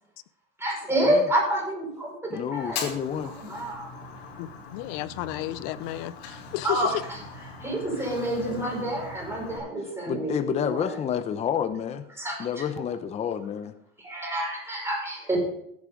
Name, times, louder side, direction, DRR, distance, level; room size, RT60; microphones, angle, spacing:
voice 1, 0.6-2.9 3.2-3.9 6.6-7.2 7.6-11.0 12.2-12.6 14.0-15.4, right 1 dB, 10° right, 5.6 m, -28 dB
voice 2, 2.3-3.3 10.1-12.0 12.4-13.7, left 8 dB, 20° left, 0.6 m, -29 dB
Fire, 2.6-9.6, left 4 dB, 85° left, 3.6 m, -41 dB
voice 3, 4.4-6.9, left 15 dB, 60° left, 0.7 m, -33 dB
15.5 x 8.5 x 3.9 m
supercardioid pair, 135°, 30 cm